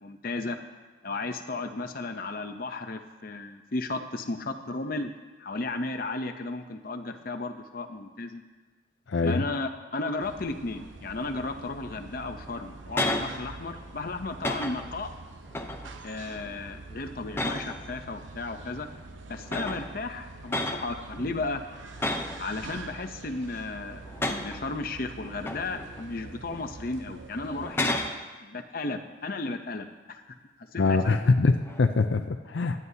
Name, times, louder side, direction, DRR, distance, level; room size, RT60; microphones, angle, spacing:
voice 1, 0.0-0.6 1.0-5.1 5.4-8.4 9.2-15.1 16.0-18.9 19.3-21.6 22.4-28.0 28.4-30.2 30.7-31.4, left 3 dB, 50° left, 6 dB, 0.8 m, -34 dB
sound 1, 10.2-28.1, right 3 dB, 85° right, 0.8 m, -45 dB
sound 2, 12.5-13.3 13.7-14.0 14.4-15.0 15.5-15.9 16.4-16.7 17.3-17.9 18.9-19.0 19.5-19.9 20.5-20.9 22.0-22.4 22.9-23.5 24.0-24.6 25.2-26.0 26.5-26.7 27.5-28.2 31.6-32.0, left 1 dB, 10° left, 0.7 m, -32 dB
voice 2, 30.8-32.8, left 3 dB, 75° left, 6 dB, 0.5 m, -23 dB
22.0 x 9.5 x 2.8 m, 1.3 s
head